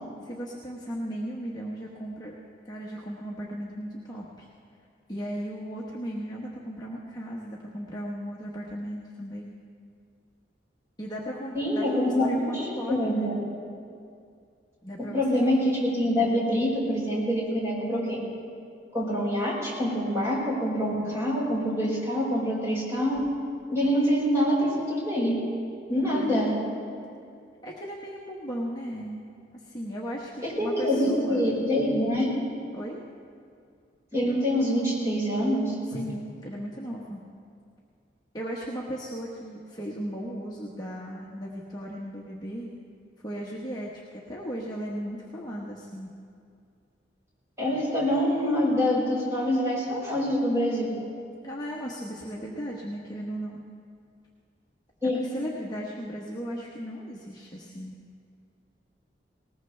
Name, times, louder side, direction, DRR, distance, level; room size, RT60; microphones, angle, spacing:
voice 1, 0.2-2.4 2.7-4.5 5.1-9.5 11.0-13.3 14.8-15.6 26.0-26.4 27.6-29.2 29.5-31.5 32.7-33.0 35.9-37.2 38.3-42.7 43.2-46.1 51.4-53.6 55.0-58.0, equal, 20° left, -4 dB, 1.2 m, -36 dB
voice 2, 11.5-13.3 15.0-18.2 18.9-23.2 23.7-25.3 25.9-26.5 30.4-32.3 34.1-35.7 47.6-50.9 55.0-55.3, equal, 15° right, -6 dB, 5.1 m, -25 dB
20.0 x 19.0 x 3.3 m, 2.4 s
head